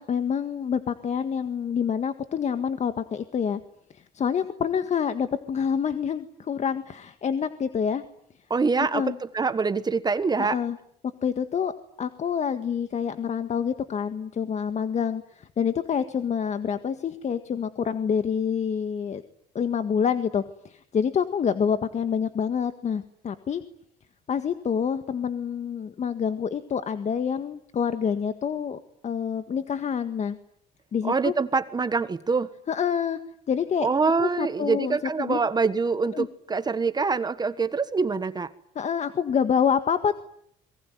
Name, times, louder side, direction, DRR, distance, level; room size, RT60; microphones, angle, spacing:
voice 1, 0.0-3.6 3.9-8.0 8.9-9.2 10.4-10.8 11.2-11.7 12.0-19.2 19.6-23.6 24.3-30.4 30.9-31.3 32.7-33.2 33.5-33.9 34.2-35.4 36.1-36.3 38.8-40.2, left 7 dB, 45° left, 10 dB, 1.7 m, -27 dB
voice 2, 8.5-10.6 31.0-32.5 33.8-38.5, right 4 dB, 25° right, 13 dB, 1.4 m, -25 dB
27.0 x 23.0 x 9.3 m, 0.69 s
cardioid pair, 110°, 17 cm